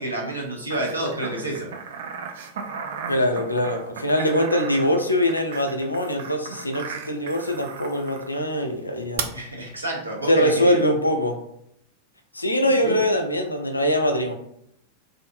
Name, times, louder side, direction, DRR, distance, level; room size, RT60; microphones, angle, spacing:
voice 1, 0.0-1.7 9.3-10.8 12.6-13.0, right 1 dB, 80° right, -1 dB, 0.7 m, -29 dB
sound 1, 0.7-8.4 9.2-9.3, right 6 dB, 60° right, 0.3 m, -36 dB
voice 2, 3.1-9.3 10.3-11.4 12.3-14.3, equal, 85° left, 5 dB, 0.4 m, -22 dB
2.6 x 2.5 x 2.5 m, 0.72 s
figure-of-eight pair, 90°, 0 cm